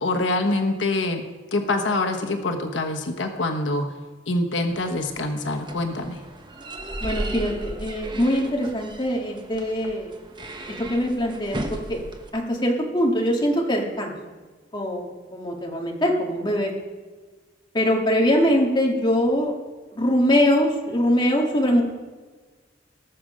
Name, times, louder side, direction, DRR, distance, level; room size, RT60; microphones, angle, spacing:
voice 1, 0.0-1.2 1.5-3.9 4.3-6.2, left 2 dB, 90° left, 4 dB, 1.2 m, -25 dB
sound 1, 4.7-12.3, right 1 dB, 25° right, 1.0 m, -36 dB
voice 2, 7.0-10.2 10.9-12.0 12.3-14.1 14.7-16.7 17.7-19.5 19.9-21.8, equal, 25° left, -1 dB, 2.0 m, -22 dB
19.5 x 6.6 x 5.0 m, 1.4 s
head